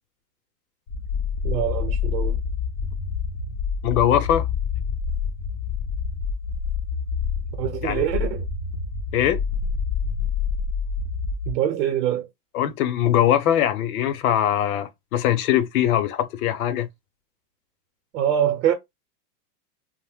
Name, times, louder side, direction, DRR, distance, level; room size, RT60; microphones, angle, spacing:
sound 1, 0.9-11.5, left 6 dB, 30° left, 0.4 m, -27 dB
voice 1, 1.4-2.4 7.6-8.5 11.5-12.3 18.1-18.7, right 10 dB, 75° right, 0.7 m, -24 dB
voice 2, 3.8-4.5 7.8-8.0 9.1-9.4 12.5-16.9, left 11 dB, 65° left, 0.7 m, -21 dB
2.5 x 2.1 x 3.4 m
supercardioid pair, 155°, 48 cm